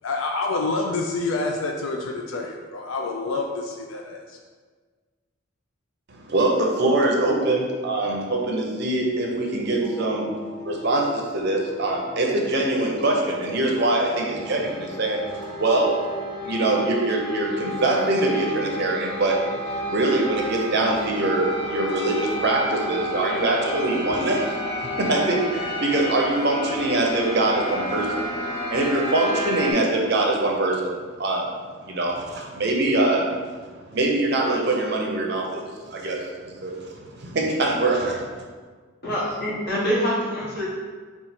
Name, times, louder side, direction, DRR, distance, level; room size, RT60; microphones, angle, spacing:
voice 1, 0.0-4.4, left 3 dB, 70° left, 2 dB, 0.3 m, -27 dB
voice 2, 6.1-10.3 10.6-16.0 16.4-19.4 19.9-24.6 25.0-28.2 28.7-31.5 31.8-33.2 33.5-33.6 33.9-35.6 35.9-38.4, right 2 dB, 50° right, -1 dB, 0.6 m, -23 dB
sound 1, 9.8-29.7, equal, 20° left, 0.6 m, -32 dB
voice 3, 39.0-40.7, equal, 50° left, -8 dB, 1.4 m, -25 dB
4.1 x 2.4 x 4.1 m, 1.5 s
head